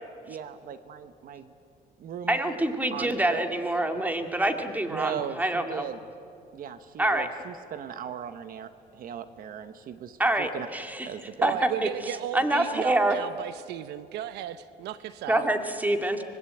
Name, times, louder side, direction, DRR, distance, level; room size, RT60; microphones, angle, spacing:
voice 1, 0.3-1.5 2.0-2.6 2.9-3.4 4.9-6.0 6.5-10.7 11.0-11.6, right 8 dB, 60° right, 11 dB, 1.1 m, -38 dB
voice 2, 2.3-5.9 7.0-7.3 10.2-11.1 11.4-11.5 11.8-11.9 12.3-13.2 15.3-16.2, right 1 dB, 10° right, 6 dB, 2.2 m, -26 dB
voice 3, 11.4-15.5, right 12 dB, 80° right, 13 dB, 0.9 m, -35 dB
25.0 x 21.0 x 9.1 m, 2.5 s
cardioid pair, 110°, 17 cm